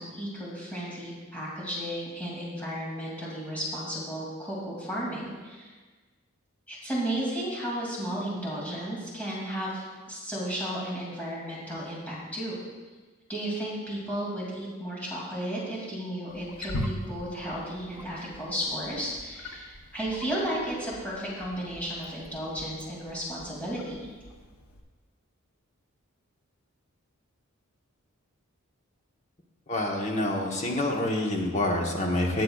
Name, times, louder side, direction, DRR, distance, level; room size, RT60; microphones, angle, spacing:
voice 1, 0.0-5.7 6.7-12.6 13.3-24.1, right 1 dB, 5° left, -6 dB, 2.5 m, -34 dB
Wild animals, 16.3-24.8, left 1 dB, 90° left, 1.0 m, -42 dB
voice 2, 29.7-32.4, left 1 dB, 35° left, 0 dB, 1.2 m, -27 dB
18.0 x 6.8 x 2.4 m, 1.4 s
head